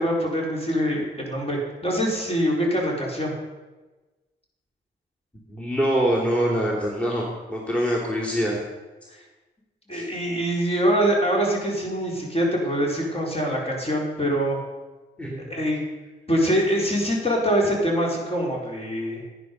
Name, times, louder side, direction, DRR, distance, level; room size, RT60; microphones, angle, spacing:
voice 1, 0.0-3.3 9.1-9.2 9.9-14.6 15.5-15.8 16.3-19.2, equal, 30° left, -2 dB, 4.5 m, -24 dB
voice 2, 5.5-7.2 7.5-8.6 9.9-10.1 15.2-15.4, equal, 5° left, -3 dB, 3.1 m, -24 dB
10.5 x 10.0 x 5.4 m, 1.2 s
supercardioid pair, 45°, 19 cm